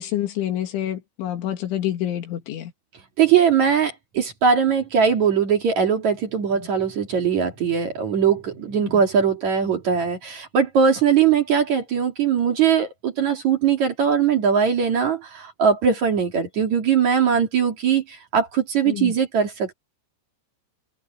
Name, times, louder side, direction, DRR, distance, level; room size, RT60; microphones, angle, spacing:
voice 1, 0.0-2.7 8.9-9.0 18.9-19.1, left 12 dB, 90° left, 4.7 m, -27 dB
voice 2, 3.2-19.7, right 7 dB, 45° right, 3.1 m, -20 dB
open air
omnidirectional pair, 5.3 m